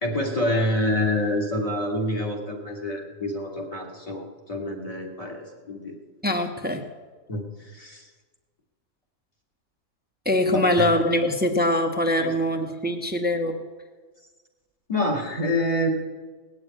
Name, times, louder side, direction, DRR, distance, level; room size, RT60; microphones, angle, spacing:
voice 1, 0.0-5.9 7.3-8.1 10.5-10.9 12.2-12.3 14.9-15.9, left 1 dB, 25° left, 1 dB, 2.3 m, -27 dB
voice 2, 6.2-6.8 10.2-13.6, left 1 dB, 10° right, 4 dB, 0.8 m, -23 dB
19.0 x 7.3 x 9.1 m, 1.4 s
omnidirectional pair, 1.6 m